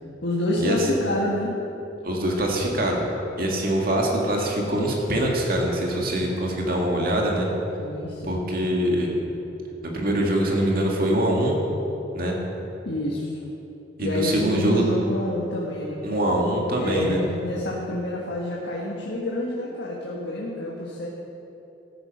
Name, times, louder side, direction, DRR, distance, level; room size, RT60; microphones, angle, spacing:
voice 1, 0.2-1.6 7.8-8.4 12.8-13.5 14.0-16.0 16.8-21.1, left 1 dB, 80° left, -3 dB, 1.6 m, -28 dB
voice 2, 2.0-3.0 3.4-7.5 8.2-9.1 9.8-11.5 12.1-12.4 14.0-14.8 16.0-17.2, right 1 dB, 55° right, -1 dB, 2.1 m, -23 dB
14.0 x 9.2 x 5.5 m, 3.0 s
head